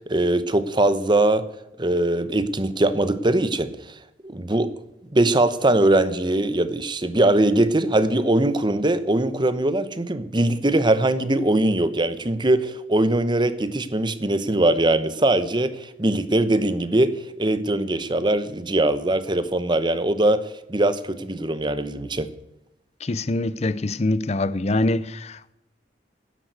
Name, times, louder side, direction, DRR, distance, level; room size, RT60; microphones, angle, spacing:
voice 1, 0.1-1.4 1.8-3.7 4.2-4.7 5.1-22.3, right 1 dB, 25° right, 0.9 m, -21 dB
voice 2, 23.0-25.5, left 2 dB, 40° left, 0.6 m, -24 dB
10.5 x 10.5 x 8.1 m
head